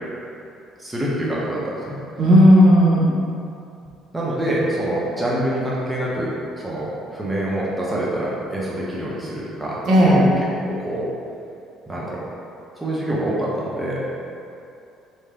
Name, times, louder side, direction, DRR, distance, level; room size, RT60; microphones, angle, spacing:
voice 1, 0.8-2.0 4.1-6.3 6.6-10.3 10.6-11.1 11.9-12.2 12.8-14.0, right 1 dB, 15° right, -7 dB, 0.8 m, -25 dB
voice 2, 2.2-3.1 9.8-10.2, equal, 50° right, -7 dB, 0.9 m, -13 dB
3.2 x 2.7 x 3.5 m, 2.6 s
figure-of-eight pair, 50°, 0 cm